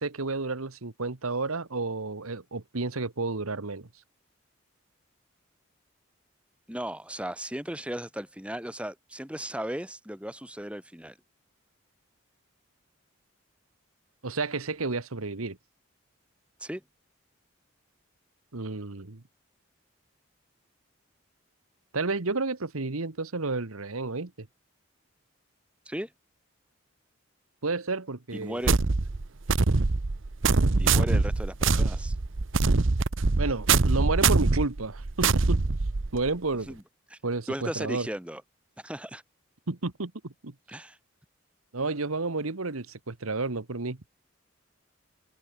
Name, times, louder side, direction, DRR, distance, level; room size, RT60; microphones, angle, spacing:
voice 1, 0.0-3.9 14.2-15.6 18.5-19.2 21.9-24.5 27.6-28.6 33.4-35.6 36.1-36.7 37.2-38.1 39.7-40.5 41.7-44.0, right 3 dB, 90° right, 1.5 m, -31 dB
voice 2, 6.7-11.2 16.6-16.8 25.9-26.1 28.3-28.8 30.8-32.2 36.7-36.8 37.1-37.2 37.5-38.4 38.8-39.2 40.7-41.0, equal, 5° right, 1.8 m, -36 dB
sound 1, 28.7-36.3, right 3 dB, 65° right, 0.9 m, -24 dB
open air
head